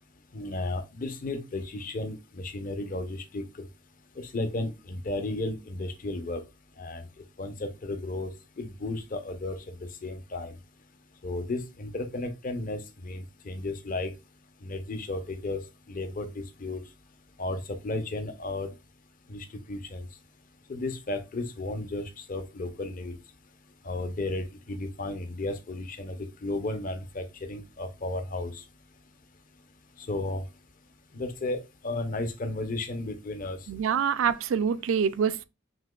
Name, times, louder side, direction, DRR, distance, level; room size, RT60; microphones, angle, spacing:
voice 1, 0.3-3.4 4.2-6.4 6.8-7.0 7.4-8.3 8.6-9.5 10.0-10.5 11.2-14.1 14.6-15.6 15.9-16.8 17.4-18.7 19.3-20.0 20.7-23.1 23.9-28.5 30.1-30.4 31.1-33.6, left 2 dB, 40° left, 0.6 m, -33 dB
voice 2, 33.7-35.4, right 7 dB, 70° right, 0.4 m, -26 dB
5.8 x 2.8 x 2.3 m
head